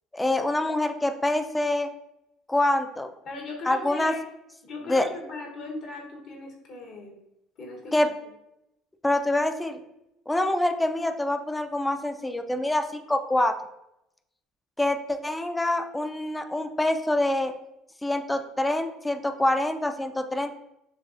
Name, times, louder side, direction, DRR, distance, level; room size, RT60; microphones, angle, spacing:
voice 1, 0.1-1.9 2.5-3.1 3.7-4.1 4.9-5.1 7.9-8.1 9.0-9.8 10.3-13.5 14.8-17.5 18.0-20.5, left 1 dB, 10° left, 7 dB, 0.4 m, -25 dB
voice 2, 3.2-4.3 4.6-7.1 7.6-8.1, left 2 dB, 60° left, 0 dB, 1.1 m, -38 dB
6.4 x 2.3 x 2.5 m, 0.85 s
supercardioid pair, 80°, 0 cm